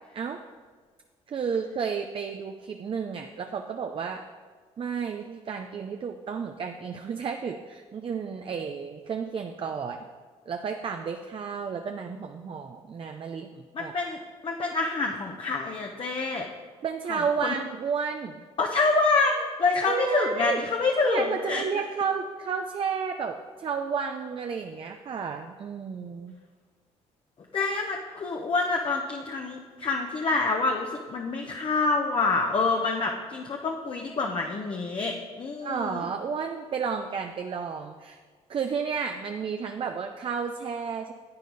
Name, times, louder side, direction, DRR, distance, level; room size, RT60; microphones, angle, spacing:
voice 1, 1.3-4.2 4.8-10.1 10.5-13.9 16.8-18.4 19.9-20.6 21.0-26.4 35.6-38.2 38.5-41.1, right 6 dB, 45° right, 5 dB, 0.6 m, -32 dB
voice 2, 13.7-14.2 14.4-16.5 17.1-17.5 18.6-21.7 27.5-36.0, left 3 dB, 45° left, 1 dB, 1.0 m, -27 dB
10.5 x 8.3 x 4.1 m, 1.5 s
supercardioid pair, 70°, 13 cm